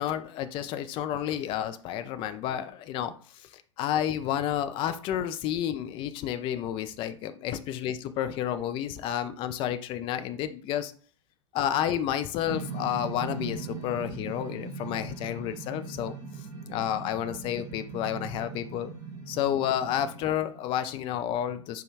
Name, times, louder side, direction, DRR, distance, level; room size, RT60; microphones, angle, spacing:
voice 1, 0.0-10.9 11.5-16.1 16.7-18.9 19.3-21.8, left 10 dB, 35° left, 10 dB, 0.4 m, -30 dB
sound 1, 12.5-20.9, right 4 dB, 35° right, 1.7 m, -40 dB
4.9 x 2.3 x 4.6 m, 0.42 s
figure-of-eight pair, 90°, 16 cm